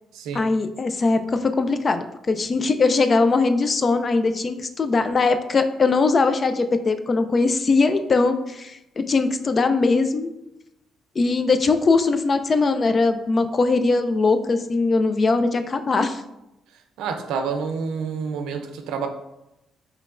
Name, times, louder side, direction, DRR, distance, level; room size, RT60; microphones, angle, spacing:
voice 1, 0.3-10.3 11.2-16.2, left 3 dB, 40° left, 9 dB, 0.3 m, -21 dB
voice 2, 17.0-19.1, right 5 dB, 90° right, 6 dB, 0.4 m, -28 dB
5.1 x 3.1 x 2.4 m, 0.90 s
cardioid pair, 90°, 0 cm